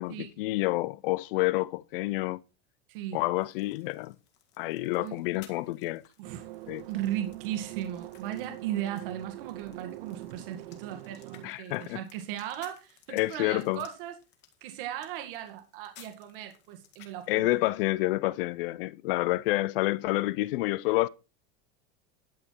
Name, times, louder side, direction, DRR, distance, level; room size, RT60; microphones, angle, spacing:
voice 1, 0.0-2.4 3.1-4.1 4.6-6.0 6.7-6.8 11.4-12.0 13.1-13.8 17.3-21.1, left 19 dB, 70° left, 0.7 m, -28 dB
voice 2, 2.9-3.2 5.0-5.2 6.2-6.5 6.9-14.2 14.6-17.7, right 11 dB, 65° right, 2.0 m, -37 dB
sound 1, 3.4-17.3, left 10 dB, 40° left, 2.0 m, -59 dB
sound 2, 6.2-11.5, right 18 dB, 85° right, 0.6 m, -44 dB
12.5 x 7.9 x 4.6 m
supercardioid pair, 175°, 29 cm